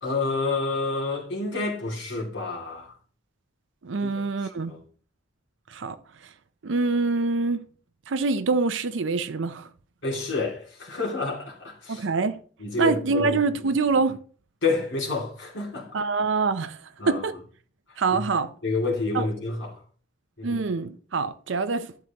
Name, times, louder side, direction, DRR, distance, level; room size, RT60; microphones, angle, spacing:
voice 1, 0.0-2.9 4.0-4.1 4.6-4.8 10.0-12.0 12.6-13.4 14.6-15.9 17.0-17.2 18.1-18.2 18.6-19.8 20.4-20.6, left 3 dB, 70° left, 2.5 m, -28 dB
voice 2, 3.8-4.7 5.7-6.0 6.6-7.7 8.1-9.7 11.9-12.4 12.8-14.2 15.9-16.8 17.1-17.4 18.0-18.5 19.1-19.3 20.4-22.1, right 4 dB, 80° right, 0.6 m, -25 dB
11.5 x 7.7 x 2.9 m
head